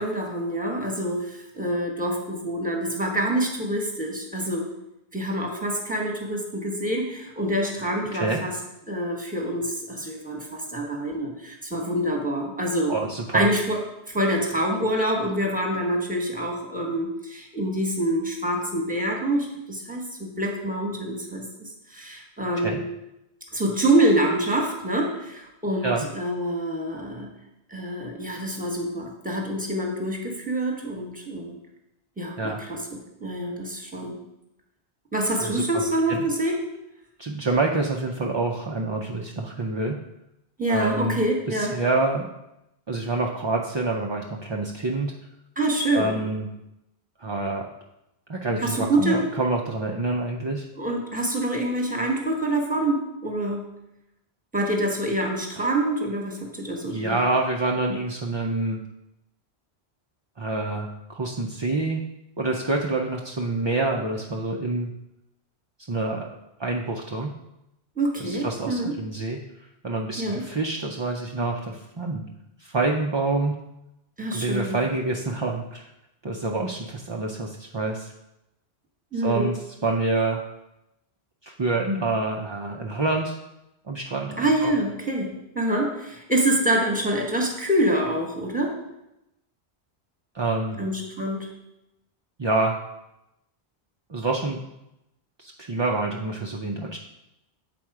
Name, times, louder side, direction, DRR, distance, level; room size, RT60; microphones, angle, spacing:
voice 1, 0.0-4.7 5.1-8.5 8.9-12.9 13.3-13.8 14.1-22.8 23.5-27.3 27.7-31.5 32.2-34.2 35.1-36.6 40.6-41.7 45.6-46.1 48.6-49.2 50.7-53.7 54.5-57.2 68.0-68.9 70.2-70.4 74.2-74.8 79.1-79.5 84.4-88.7 90.8-91.5, right 1 dB, 10° right, 0 dB, 1.1 m, -26 dB
voice 2, 12.9-13.5 22.6-22.8 25.8-26.1 32.4-32.6 35.4-35.8 36.1-36.2 37.2-39.9 40.7-41.2 41.5-42.3 42.9-45.1 45.9-46.5 47.2-47.6 48.3-50.7 55.6-55.7 56.8-58.8 60.4-62.0 62.4-64.9 65.9-66.3 66.6-67.3 68.2-69.4 69.8-72.2 72.6-73.5 74.3-75.9 76.2-78.1 79.1-80.4 81.4-83.4 83.9-84.7 90.3-90.8 92.4-92.8 94.1-94.6 95.4-97.0, right 2 dB, 40° right, 0 dB, 0.4 m, -27 dB
7.6 x 4.3 x 4.7 m, 0.89 s
omnidirectional pair, 1.1 m